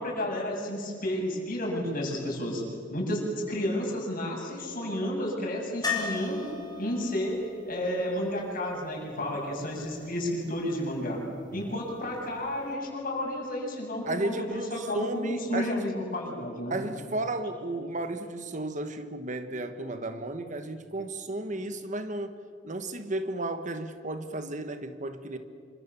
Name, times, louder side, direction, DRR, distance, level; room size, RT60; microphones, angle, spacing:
voice 1, 0.0-2.6 2.9-6.5 6.8-7.4 7.7-11.2 11.5-16.8, left 1 dB, 45° left, -1 dB, 7.8 m, -31 dB
sound 1, 5.8-9.7 12.4-12.5 12.7-12.8, left 5 dB, 20° left, 4.5 m, -37 dB
voice 2, 11.5-11.8 14.0-15.7 16.7-22.3 22.6-25.4, right 2 dB, 40° right, 9 dB, 1.3 m, -34 dB
27.5 x 25.5 x 7.1 m, 2.4 s
head